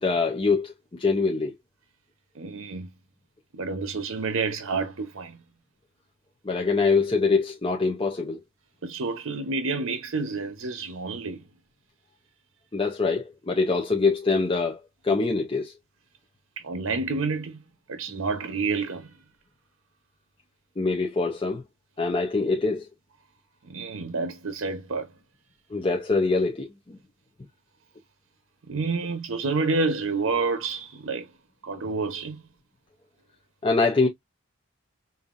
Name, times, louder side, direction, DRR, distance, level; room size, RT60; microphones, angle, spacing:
voice 1, 0.0-1.5 6.4-8.4 12.7-14.8 15.0-15.7 20.8-21.6 22.0-22.9 25.7-27.0 33.6-34.1, left 4 dB, 25° left, 0.6 m, -24 dB
voice 2, 2.4-2.9 3.5-5.4 8.8-11.4 16.6-17.6 17.9-19.1 23.6-25.1 28.7-31.3 31.6-32.4, right 4 dB, 75° right, 0.8 m, -29 dB
5.3 x 2.6 x 2.5 m
head